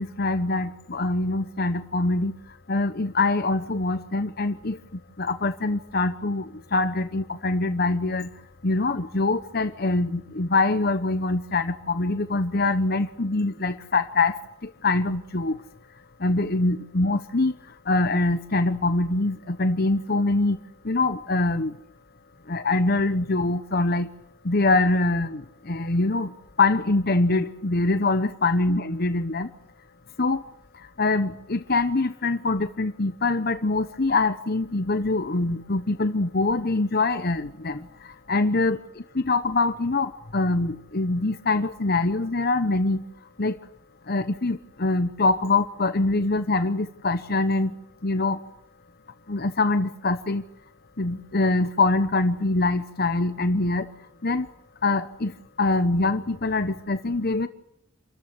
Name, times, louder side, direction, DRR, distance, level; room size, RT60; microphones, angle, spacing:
voice 1, 0.0-8.3 8.6-15.6 16.2-21.8 22.5-24.1 24.4-29.5 30.2-30.5 30.7-43.0 43.4-43.6 44.1-47.7 48.0-48.4 49.3-50.4 51.0-53.9 54.2-54.5 54.8-57.5, left 2 dB, 45° left, 11 dB, 1.0 m, -24 dB
27.5 x 14.0 x 9.6 m, 0.81 s
head